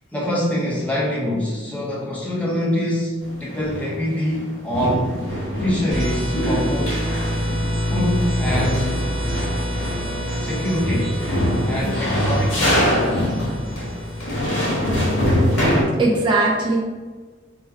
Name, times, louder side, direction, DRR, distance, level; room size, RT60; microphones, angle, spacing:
voice 1, 0.1-5.2 5.6-7.0 7.8-9.1 10.4-13.1, equal, 5° left, -5 dB, 0.7 m, -25 dB
sound 1, 3.2-4.4 4.7-15.8, equal, 85° left, 1.5 m, -24 dB
sound 2, 5.9-15.6, equal, 75° right, 1.3 m, -27 dB
voice 2, 15.3-16.8, right 2 dB, 25° right, -3 dB, 0.4 m, -21 dB
3.5 x 2.2 x 4.4 m, 1.4 s
head